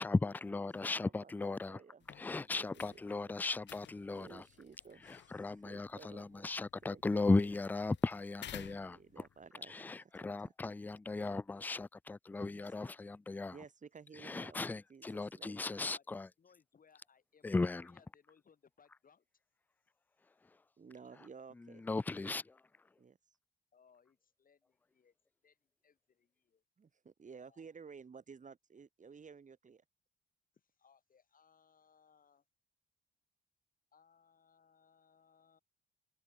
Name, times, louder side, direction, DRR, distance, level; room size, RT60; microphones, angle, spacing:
voice 1, 0.0-1.8 2.2-4.4 5.1-9.0 9.7-13.5 14.2-16.3 17.4-17.9 21.8-22.6, left 3 dB, 10° left, 0.3 m, -36 dB
voice 2, 0.8-3.4 4.1-6.5 6.8-7.4 8.9-10.5 12.4-12.6 13.5-14.6 14.9-15.6 20.8-21.8 23.0-23.2 26.8-29.8, right 5 dB, 40° right, 4.2 m, -55 dB
sound 1, 2.0-9.5, left 11 dB, 65° left, 1.3 m, -56 dB
voice 3, 12.5-13.1 15.5-16.1 16.4-19.3 23.7-25.2 25.4-26.6 27.3-27.7 30.5-32.4 33.9-35.6, left 6 dB, 45° left, 6.6 m, -68 dB
cardioid pair, 90°, 20 cm